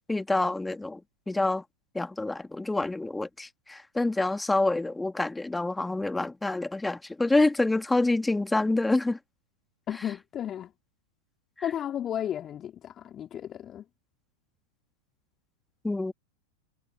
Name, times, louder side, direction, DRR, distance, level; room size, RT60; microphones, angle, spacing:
voice 1, 0.1-1.0 1.3-1.6 1.9-9.2 15.8-16.1, left 2 dB, 5° left, 2.2 m, -27 dB
voice 2, 9.9-10.7 11.6-13.8, left 10 dB, 25° left, 4.6 m, -33 dB
figure-of-eight pair, 90°, 0 cm